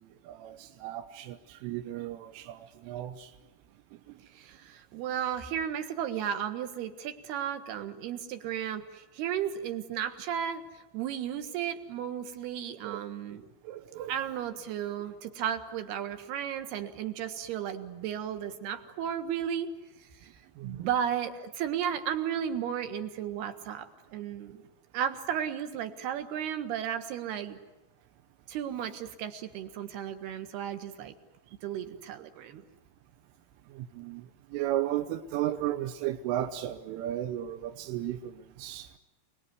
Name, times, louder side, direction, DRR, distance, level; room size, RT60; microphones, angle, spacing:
voice 1, 0.3-3.3 12.8-13.0 13.3-13.4 13.7-14.1 20.6-20.9 33.8-34.3 34.5-38.9, right 13 dB, 80° right, 3.5 m, -34 dB
voice 2, 4.3-10.6 10.9-13.5 14.1-19.7 20.6-24.6 24.9-27.6 28.5-31.1 31.6-32.6, right 9 dB, 65° right, 3.1 m, -34 dB
28.5 x 21.0 x 9.7 m
omnidirectional pair, 5.9 m